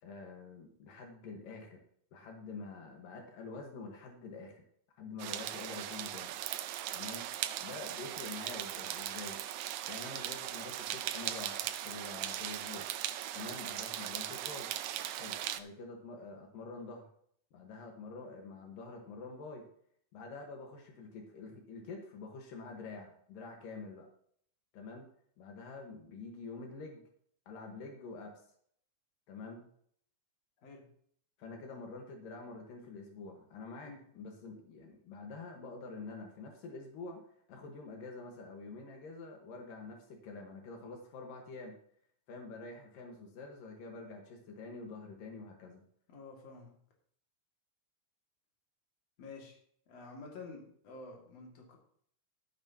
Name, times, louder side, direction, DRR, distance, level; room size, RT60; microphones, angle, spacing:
voice 1, 0.0-1.8 2.1-4.6 5.0-6.3 6.9-9.4 9.9-12.9 13.3-14.7 15.2-17.1 17.5-19.6 20.1-24.1 24.7-25.1 25.4-27.0 27.5-28.3 29.3-29.7 31.4-37.2 37.5-41.7 42.3-45.8, left 3 dB, 80° left, 2 dB, 3.2 m, -47 dB
sound 1, 5.2-15.6, right 12 dB, 80° right, 1.8 m, -39 dB
voice 2, 46.1-46.8 49.2-49.6 49.9-51.8, left 3 dB, 50° left, 0 dB, 3.2 m, -49 dB
14.0 x 9.6 x 2.9 m, 0.63 s
omnidirectional pair, 3.9 m